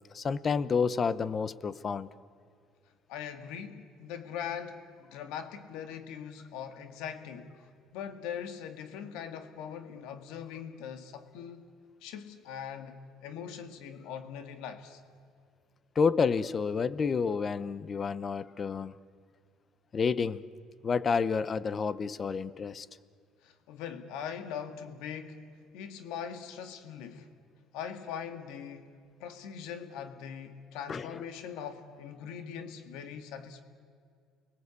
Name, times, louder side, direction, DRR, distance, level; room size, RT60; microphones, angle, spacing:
voice 1, 0.1-2.1 15.9-19.0 19.9-20.5 20.8-22.9 30.9-31.2, left 5 dB, 30° left, 17 dB, 0.7 m, -29 dB
voice 2, 3.1-7.5 7.9-11.6 12.0-15.0 23.4-27.3 27.7-28.9 29.2-33.6, left 8 dB, 85° left, 8 dB, 1.8 m, -41 dB
29.5 x 22.0 x 8.3 m, 2.3 s
cardioid pair, 150°, 0 cm